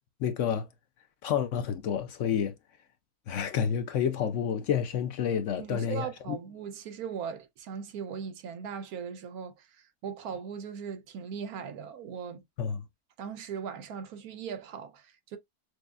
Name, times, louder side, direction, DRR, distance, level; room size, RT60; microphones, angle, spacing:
voice 1, 0.2-0.7 1.2-2.6 3.3-6.4 12.6-12.8, left 8 dB, 65° left, 0.8 m, -29 dB
voice 2, 5.5-12.4 13.2-15.4, right 7 dB, 80° right, 1.2 m, -39 dB
6.3 x 2.1 x 2.3 m
omnidirectional pair, 1.6 m